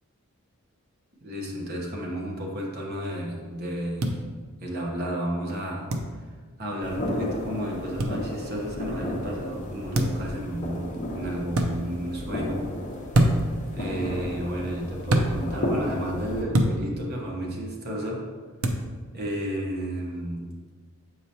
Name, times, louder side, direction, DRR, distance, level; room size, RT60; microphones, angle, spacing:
voice 1, 1.2-4.2 4.6-5.9 6.6-12.6 13.7-18.2 19.1-20.5, equal, 45° right, -2 dB, 1.0 m, -32 dB
sound 1, 4.0-4.1 5.9-6.1 8.0-8.2 9.9-10.3 11.5-11.7 13.1-13.5 15.1-15.3 16.5-16.8 18.6-18.8, right 1 dB, 75° right, 0.7 m, -22 dB
sound 2, 6.8-16.4, left 1 dB, 35° left, 0.8 m, -33 dB
7.5 x 4.8 x 2.8 m, 1.5 s
head